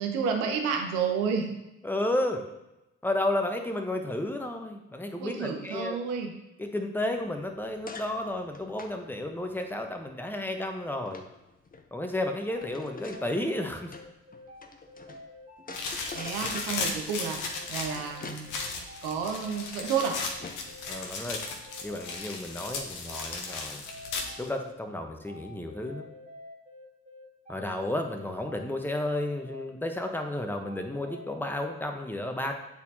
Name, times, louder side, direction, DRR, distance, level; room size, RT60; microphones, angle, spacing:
voice 1, 0.0-1.5 5.2-6.3 16.1-18.5 19.0-20.2, right 6 dB, 80° right, 4 dB, 0.8 m, -30 dB
voice 2, 1.8-2.4 3.0-6.0 6.6-11.2 11.9-13.9 16.0-16.1 20.9-21.4 21.8-23.8 24.4-26.0 27.5-32.5, left 1 dB, 5° left, 4 dB, 1.0 m, -32 dB
sound 1, 7.2-15.2 15.6-20.8, left 4 dB, 25° left, 0.8 m, -47 dB
sound 2, 12.5-31.3, left 1 dB, 25° right, 1.2 m, -49 dB
sound 3, 15.7-24.5, left 4 dB, 70° left, 1.0 m, -36 dB
8.3 x 4.3 x 2.9 m, 0.92 s
hypercardioid pair, 45°, 32 cm